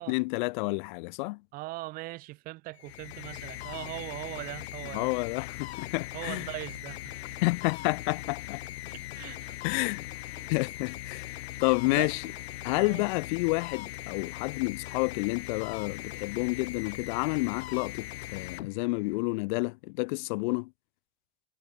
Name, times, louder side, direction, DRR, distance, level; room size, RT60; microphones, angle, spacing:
voice 1, 0.0-1.4 4.9-6.5 7.4-8.6 9.6-10.1 10.5-12.2 12.6-20.7, left 27 dB, 50° left, 0.4 m, -30 dB
voice 2, 1.5-5.1 6.1-7.2 8.9-9.6 10.3-10.5 11.4-11.6 11.9-12.2 12.8-13.0, right 20 dB, 30° right, 0.4 m, -40 dB
sound 1, 2.7-19.3, left 16 dB, 75° left, 1.7 m, -40 dB
Explosion, 5.3-6.9, right 3 dB, 10° right, 4.4 m, -67 dB
supercardioid pair, 140°, 32 cm